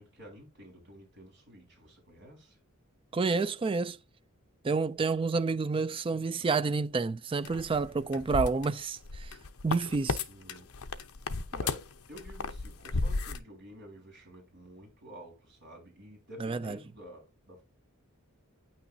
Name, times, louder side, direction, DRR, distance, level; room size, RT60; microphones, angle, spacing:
voice 1, 0.0-2.6 7.5-7.7 10.3-10.7 11.5-17.6, equal, 50° right, 4.1 m, -51 dB
voice 2, 3.1-4.0 4.6-9.3 9.6-10.2 16.4-16.8, right 4 dB, 25° right, 0.3 m, -29 dB
sound 1, 7.4-10.2 10.5-13.4, left 3 dB, 75° left, 0.8 m, -34 dB
9.1 x 6.1 x 2.7 m
head